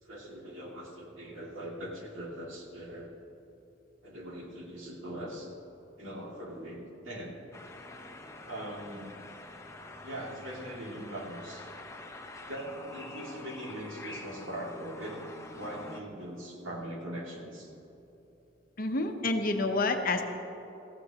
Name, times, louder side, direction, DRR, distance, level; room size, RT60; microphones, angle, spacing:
voice 1, 0.0-3.1 4.0-5.5 6.0-7.4 8.5-9.2 10.0-11.7 12.5-15.2 15.5-17.7, right 1 dB, 85° right, -2 dB, 2.5 m, -41 dB
sound 1, 7.5-16.0, left 2 dB, 15° left, 0.8 m, -46 dB
voice 2, 18.8-20.2, left 2 dB, 45° left, 5 dB, 0.9 m, -28 dB
18.5 x 15.0 x 3.0 m, 2.9 s
head